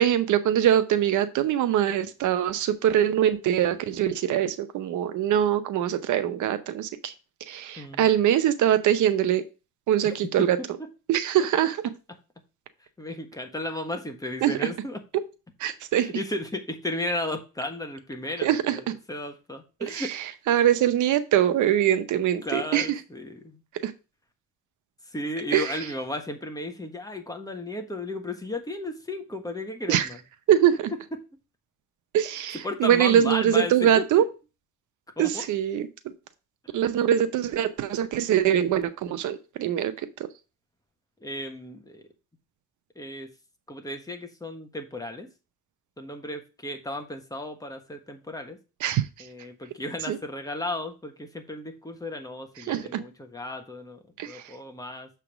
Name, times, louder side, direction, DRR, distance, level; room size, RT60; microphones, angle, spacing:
voice 1, 0.0-7.1 7.5-9.4 9.9-10.6 11.1-11.8 14.4-14.5 15.6-16.1 18.4-18.8 19.8-20.1 20.5-22.9 23.8-23.9 25.5-25.7 29.9-30.1 30.5-30.7 32.1-34.2 35.2-35.9 36.7-39.9 40.2-40.3 48.8-49.0 50.1-50.2 52.7-53.0 54.2-54.4, right 10 dB, 75° right, 0.7 m, -23 dB
voice 2, 7.8-8.1 10.0-10.5 13.0-15.0 15.9-20.1 22.4-23.6 25.0-30.2 32.6-34.1 35.2-35.5 36.8-36.9 41.2-42.0 42.9-43.3 43.7-45.3 46.0-48.6 49.2-54.0 54.3-55.1, left 1 dB, 10° left, 1.4 m, -34 dB
6.9 x 3.5 x 6.0 m
cardioid pair, 90°, 30 cm